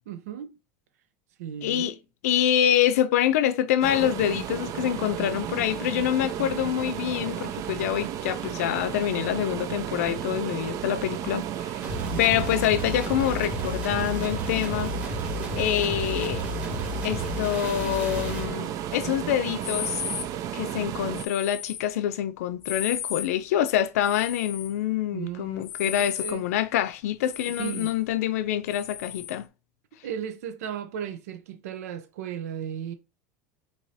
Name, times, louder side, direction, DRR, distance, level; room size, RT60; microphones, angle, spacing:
voice 1, 0.1-0.5 1.4-2.0 12.1-12.7 25.1-26.4 27.6-27.9 30.0-32.9, right 9 dB, 90° right, 0.7 m, -36 dB
voice 2, 1.6-1.9 2.2-11.7 12.2-15.0 15.5-16.4 17.0-20.0 20.5-29.5, left 11 dB, 85° left, 0.5 m, -26 dB
sound 1, 3.8-21.3, right 10 dB, 45° right, 0.4 m, -33 dB
sound 2, 11.8-18.5, left 2 dB, 15° right, 1.7 m, -33 dB
sound 3, 19.6-20.3 21.1-21.8 22.6-23.3 24.0-24.7 25.6-26.4 27.2-28.0 28.7-29.4, left 9 dB, 35° left, 0.6 m, -35 dB
4.7 x 2.9 x 2.8 m
supercardioid pair, 125°, 8 cm